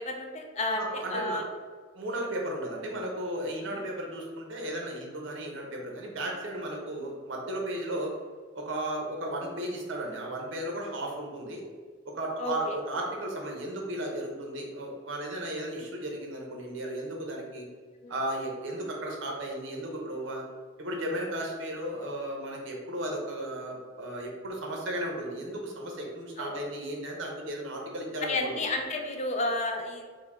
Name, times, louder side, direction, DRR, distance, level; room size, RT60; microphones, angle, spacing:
voice 1, 0.0-1.5 3.7-3.9 7.0-7.2 12.4-12.7 18.0-18.1 26.4-26.6 28.2-30.1, left 2 dB, 35° left, 4 dB, 0.4 m, -32 dB
voice 2, 0.8-1.4 1.9-8.1 8.5-11.6 12.0-17.6 18.1-20.4 20.8-28.6, right 1 dB, 75° right, 0 dB, 0.9 m, -35 dB
4.9 x 2.2 x 4.2 m, 1.5 s
head